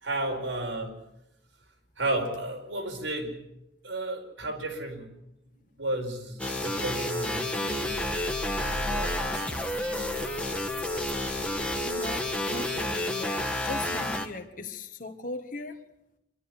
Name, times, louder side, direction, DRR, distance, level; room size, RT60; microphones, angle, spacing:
voice 1, 0.0-0.9 2.0-3.4 3.8-5.1 5.8-6.4 6.6-8.0 8.6-10.3, right 1 dB, 90° right, 2 dB, 5.0 m, -33 dB
sound 1, 6.4-14.3, left 1 dB, 5° left, 1.4 m, -30 dB
sound 2, 7.7-12.7, equal, 35° right, 2.0 m, -41 dB
voice 2, 11.8-15.8, left 2 dB, 45° left, 5 dB, 1.6 m, -39 dB
26.5 x 12.5 x 9.7 m, 0.84 s
head